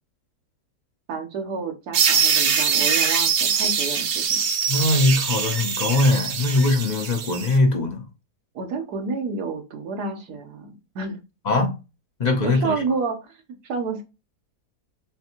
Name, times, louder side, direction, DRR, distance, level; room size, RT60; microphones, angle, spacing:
voice 1, 1.1-4.4 8.5-11.2 12.4-13.4 13.6-14.0, right 4 dB, 75° right, 1.4 m, -30 dB
sound 1, 1.9-7.5, right 6 dB, 55° right, 0.8 m, -23 dB
voice 2, 4.7-8.1 11.4-11.8 12.2-12.8, left 2 dB, 55° left, 0.4 m, -21 dB
4.5 x 3.4 x 2.9 m
omnidirectional pair, 1.7 m